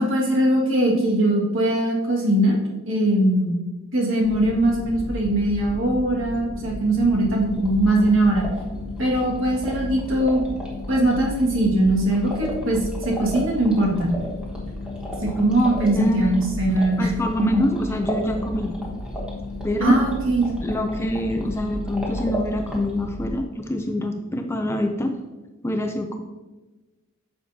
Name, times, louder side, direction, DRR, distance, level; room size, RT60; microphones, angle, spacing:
voice 1, 0.0-2.6 2.8-3.6 3.9-8.5 9.0-10.4 10.9-14.2 15.2-17.1 17.4-17.6 19.8-20.5, right 1 dB, 60° right, -2 dB, 1.9 m, -21 dB
sound 1, 4.2-23.4, left 2 dB, 45° left, 0.8 m, -34 dB
sound 2, 7.5-23.1, equal, 5° right, 1.4 m, -37 dB
voice 2, 15.9-16.5 17.0-18.8 19.6-20.0 20.6-25.2 25.6-26.2, left 1 dB, 10° left, 5 dB, 0.4 m, -25 dB
9.7 x 6.6 x 2.8 m, 1.2 s
head